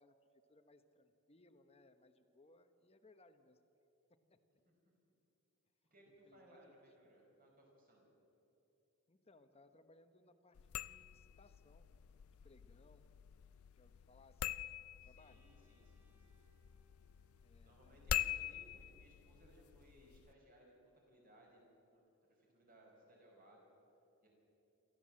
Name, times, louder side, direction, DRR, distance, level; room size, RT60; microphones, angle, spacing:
voice 1, 0.0-3.6 4.1-4.4 6.1-6.8 9.1-11.9 12.2-13.1 13.6-14.8 15.0-15.5 17.4-18.3, left 2 dB, 30° left, 9 dB, 1.0 m, -67 dB
voice 2, 5.9-8.1 15.0-16.4 17.6-22.0 22.3-23.7 24.2-24.3, right 1 dB, 40° right, -1 dB, 5.6 m, -65 dB
sound 1, 10.5-20.3, left 11 dB, 80° left, 0.4 m, -46 dB
Bowed string instrument, 15.2-19.0, left 1 dB, 10° right, 1.7 m, -79 dB
27.5 x 13.5 x 7.6 m, 3.0 s
head